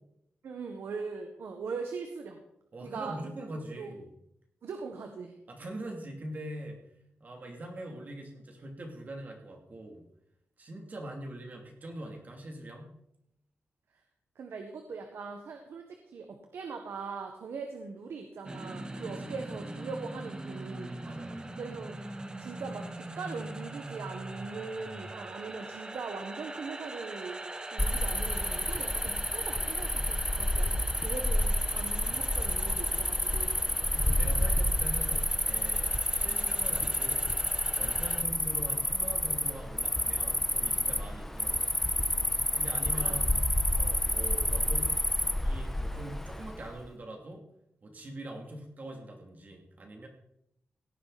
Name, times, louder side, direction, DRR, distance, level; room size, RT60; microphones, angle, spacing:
voice 1, 0.4-2.4 2.8-3.3 3.7-3.9 4.6-5.3 14.3-21.0 21.5-22.0 22.4-27.4 27.7-33.5 42.9-43.2, right 4 dB, 80° right, 4 dB, 1.5 m, -41 dB
voice 2, 2.7-4.1 5.5-6.8 7.2-10.0 10.6-12.9 19.0-19.3 21.0-21.6 30.5-30.9 33.9-37.3 37.8-41.8 42.5-43.3 43.8-45.0 45.4-47.4 47.8-50.1, right 1 dB, 45° right, 1 dB, 2.9 m, -43 dB
sound 1, 18.4-38.2, right 2 dB, 20° right, 1.2 m, -43 dB
Cricket, 27.8-46.7, left 1 dB, 5° left, 1.0 m, -29 dB
17.5 x 9.8 x 4.2 m, 0.77 s
wide cardioid pair, 120°, 4 cm